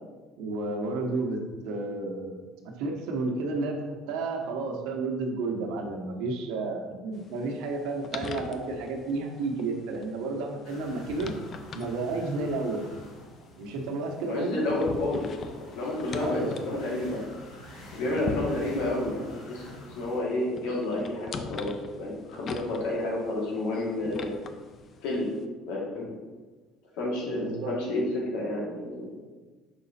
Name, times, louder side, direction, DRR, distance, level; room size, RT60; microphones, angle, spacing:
voice 1, 0.4-1.4 1.6-2.4 2.8-3.8 4.1-11.3 11.7-12.8 13.6-14.6 16.2-16.5 27.3-28.1, right 3 dB, 80° right, 2 dB, 1.0 m, -31 dB
sound 1, 7.1-25.4, left 4 dB, 35° left, 0.4 m, -43 dB
sound 2, 10.6-20.2, left 1 dB, 70° left, 2.0 m, -47 dB
voice 2, 14.2-15.2 15.7-17.2 17.9-19.6 20.0-21.7 22.0-24.4 25.0-25.3 25.7-26.1 26.9-29.1, left 1 dB, 85° left, -3 dB, 2.0 m, -30 dB
6.2 x 4.0 x 4.3 m, 1.3 s
cardioid pair, 150°, 0 cm